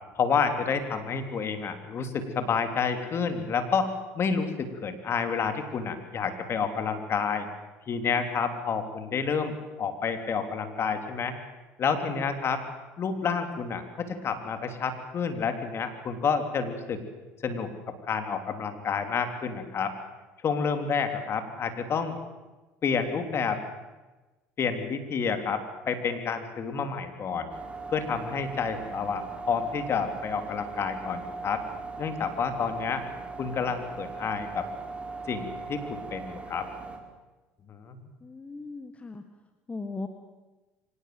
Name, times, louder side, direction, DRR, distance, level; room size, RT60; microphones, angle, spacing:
voice 1, 0.1-7.5 7.9-11.3 11.8-12.6 13.0-17.0 17.4-17.7 18.1-19.9 20.4-22.2 22.8-23.6 24.6-27.5 27.9-31.6 32.0-33.0 33.4-34.7 35.3-36.7 37.7-38.0, left 6 dB, 45° left, 7 dB, 3.4 m, -29 dB
sound 1, 27.5-37.0, right 4 dB, 20° right, 4.2 m, -39 dB
voice 2, 38.2-39.2 39.7-40.1, left 3 dB, 20° left, 7 dB, 1.9 m, -37 dB
24.5 x 18.5 x 8.0 m, 1.2 s
supercardioid pair, 90°, 6 cm